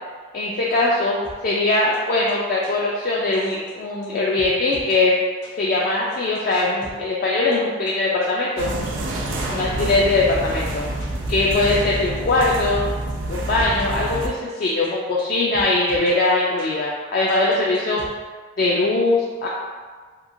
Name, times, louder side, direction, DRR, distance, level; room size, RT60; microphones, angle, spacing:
voice 1, 0.3-5.2 5.6-8.7 9.5-10.9 11.3-12.8 13.3-18.0 18.6-19.5, left 2 dB, 50° left, -5 dB, 0.3 m, -21 dB
sound 1, 1.2-1.4 1.9-2.0 2.3-2.4 2.6-2.7 3.3-3.7 4.0-4.1 4.4-4.9 5.4-5.5 6.1-6.9 7.5-7.6 7.9-8.0 8.2-8.3 8.9-9.7 10.0-10.5 11.0-11.1 11.7-12.5 13.1-13.2 13.4-13.5 13.8-13.9 14.5-14.9 15.2-15.3 15.5-16.1 16.6-16.7 17.3-18.1, equal, 75° left, 0.8 m, -42 dB
sound 2, 8.6-14.3, right 1 dB, 85° right, 0.4 m, -27 dB
2.9 x 2.6 x 2.5 m, 1.5 s
head